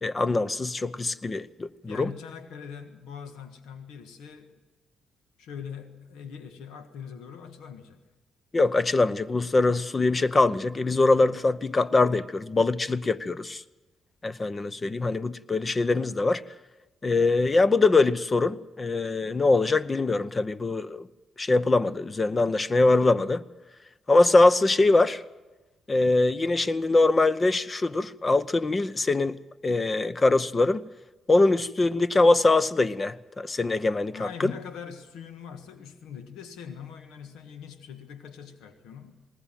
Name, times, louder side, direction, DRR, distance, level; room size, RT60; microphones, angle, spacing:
voice 1, 0.0-2.1 8.5-13.6 14.2-16.4 17.0-21.1 21.4-23.4 24.1-25.2 25.9-29.4 29.6-30.8 31.3-34.5, left 2 dB, 30° left, 0.8 m, -23 dB
voice 2, 1.8-4.6 5.4-8.0 34.1-39.2, left 7 dB, 90° left, 1.5 m, -42 dB
20.0 x 20.0 x 7.5 m
cardioid pair, 70°, 0 cm